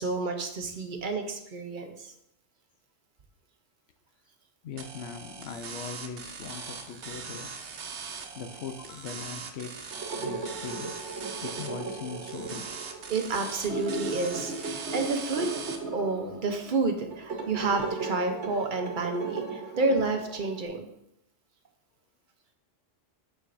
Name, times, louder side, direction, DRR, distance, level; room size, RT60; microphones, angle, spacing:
voice 1, 0.0-2.1 13.1-15.5 15.9-20.9, right 3 dB, 50° right, 5 dB, 0.9 m, -30 dB
voice 2, 4.6-7.6 8.3-11.0 11.4-12.9, left 6 dB, 70° left, 8 dB, 0.9 m, -40 dB
sound 1, 4.8-15.8, right 5 dB, 90° right, 1.1 m, -41 dB
sound 2, 9.9-20.7, right 3 dB, 70° right, 1.3 m, -37 dB
7.0 x 6.3 x 2.6 m, 0.79 s
omnidirectional pair, 1.1 m